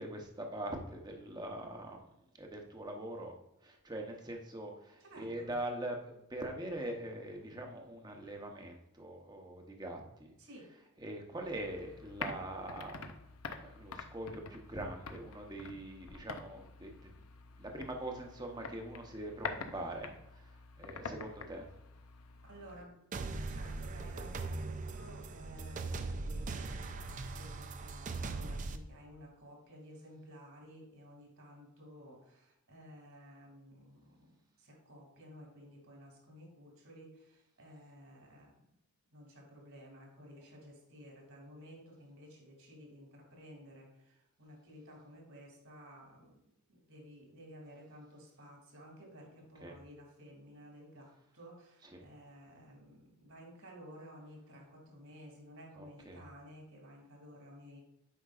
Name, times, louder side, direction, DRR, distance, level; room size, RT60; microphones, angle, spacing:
voice 1, 0.0-2.0 2.4-3.3 3.6-10.3 11.0-13.2 13.5-16.9 17.6-20.1 20.4-21.7 49.6-49.8 51.9-52.0 55.8-56.2, right 1 dB, 20° right, 2 dB, 0.9 m, -43 dB
voice 2, 5.0-5.6 10.4-10.7 19.7-19.9 22.4-23.0 23.5-38.6 39.1-46.4 46.7-57.8, equal, 70° right, 0 dB, 2.5 m, -54 dB
sound 1, 11.4-22.8, left 4 dB, 75° left, 0.6 m, -47 dB
sound 2, 23.1-28.8, right 3 dB, 35° right, 0.4 m, -40 dB
8.5 x 5.3 x 2.4 m, 0.85 s
head